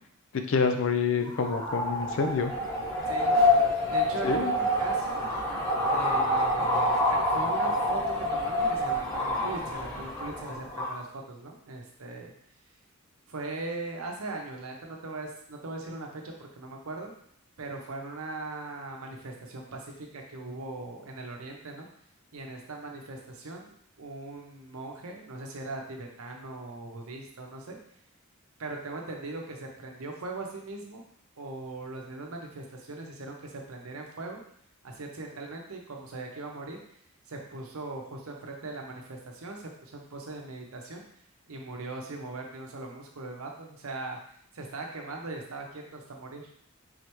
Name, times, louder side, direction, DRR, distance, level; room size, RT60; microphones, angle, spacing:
voice 1, 0.5-2.5 4.2-4.5, left 5 dB, 60° left, 7 dB, 0.4 m, -27 dB
sound 1, 1.2-11.0, left 1 dB, 15° left, 1.2 m, -27 dB
voice 2, 3.9-5.2 5.8-12.3 13.3-17.1 17.6-21.9 22.3-23.7 24.0-27.8 28.6-31.0 31.4-34.4 34.8-36.8 37.3-41.0 41.5-44.2 44.5-46.5, right 2 dB, 75° right, 1 dB, 0.8 m, -40 dB
3.9 x 3.3 x 3.0 m, 0.67 s
head